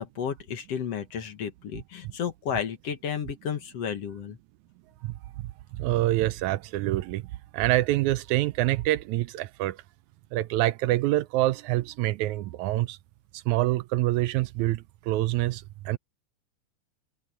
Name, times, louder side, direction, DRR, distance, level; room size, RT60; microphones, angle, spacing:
voice 1, 0.0-4.4, left 7 dB, 55° left, 2.4 m, -32 dB
voice 2, 5.7-7.3 7.5-9.8 10.3-13.0 13.3-16.0, right 16 dB, 80° right, 1.9 m, -26 dB
omnidirectional pair, 3.5 m